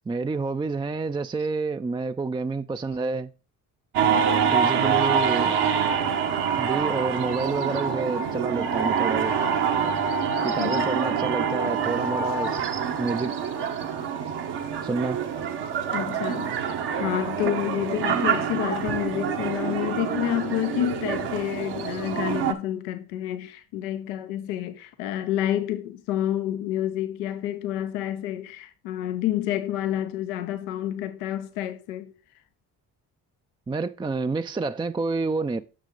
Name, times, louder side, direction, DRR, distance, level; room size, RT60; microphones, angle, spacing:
voice 1, 0.1-3.3 4.5-5.6 6.5-9.3 10.4-12.7 13.0-13.4 14.8-15.2 33.7-35.6, right 3 dB, 10° right, 0.3 m, -28 dB
sound 1, 3.9-22.5, right 7 dB, 65° right, 1.2 m, -26 dB
voice 2, 15.9-16.7 16.9-32.1, left 12 dB, 90° left, 0.6 m, -29 dB
6.6 x 6.4 x 3.8 m
hypercardioid pair, 45°, 43 cm